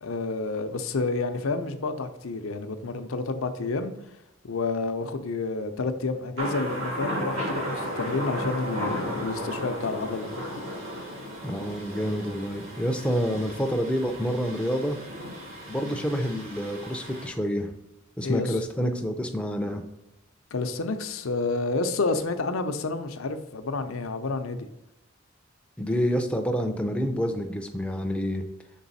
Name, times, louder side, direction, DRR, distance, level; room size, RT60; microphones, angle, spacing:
voice 1, 0.0-3.9 4.4-10.3 18.2-18.6 20.5-24.7, left 3 dB, 70° left, 8 dB, 0.6 m, -29 dB
Thunder, 6.4-17.3, equal, 70° right, 1.9 m, -34 dB
voice 2, 11.4-15.0 15.7-17.7 18.2-19.8 25.8-28.4, equal, 5° left, 4 dB, 0.5 m, -28 dB
6.0 x 3.9 x 4.1 m, 0.89 s
head